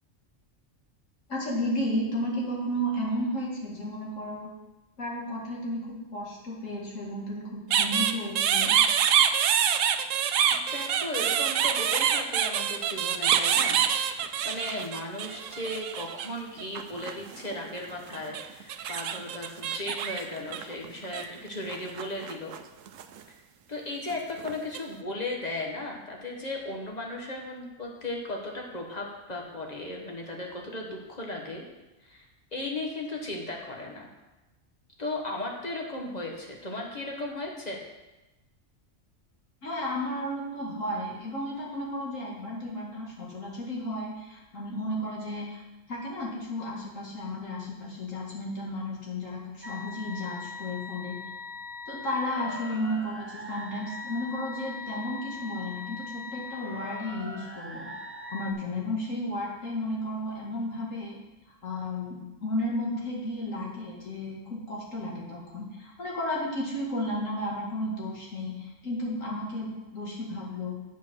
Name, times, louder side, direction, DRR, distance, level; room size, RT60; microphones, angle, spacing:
voice 1, 1.3-4.5 5.0-8.8 39.6-45.6 45.9-51.2 51.9-57.9 58.3-61.2 61.6-70.7, left 1 dB, 75° left, -3 dB, 2.5 m, -33 dB
sound 1, 7.7-16.3 16.6-17.6 18.1-21.2 21.7-22.6 22.9-23.2 24.1-24.8, right 8 dB, 80° right, 1.0 m, -26 dB
voice 2, 10.5-13.8 14.1-22.5 23.7-31.6 32.0-32.3 32.5-34.1 35.0-37.8, left 2 dB, 35° left, 0 dB, 1.4 m, -36 dB
sound 2, 49.6-58.5, left 3 dB, 20° right, 0.3 m, -41 dB
8.4 x 5.2 x 6.2 m, 1.1 s
omnidirectional pair, 1.3 m